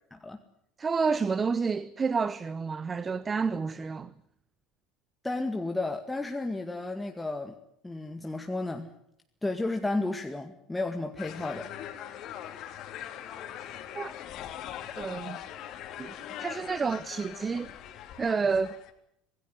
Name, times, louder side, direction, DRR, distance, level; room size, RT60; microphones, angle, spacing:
voice 1, 0.8-4.1 13.9-14.1 15.0-15.4 16.0-17.7 18.2-18.7, right 5 dB, 25° right, 1.0 m, -29 dB
voice 2, 5.2-7.5 7.8-8.9 9.4-11.7, left 2 dB, 10° left, 2.1 m, -32 dB
sound 1, 11.2-18.9, left 10 dB, 50° left, 3.2 m, -41 dB
26.5 x 18.5 x 9.6 m
figure-of-eight pair, 65°, 0 cm